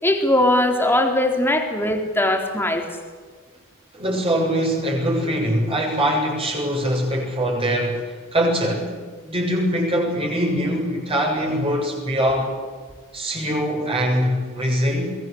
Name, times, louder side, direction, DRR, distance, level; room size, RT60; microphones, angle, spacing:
voice 1, 0.0-2.9, left 1 dB, 10° left, 4.0 m, -20 dB
voice 2, 3.9-8.9 9.2-12.5 13.1-15.2, equal, 25° right, 7.2 m, -22 dB
28.5 x 21.0 x 8.2 m
head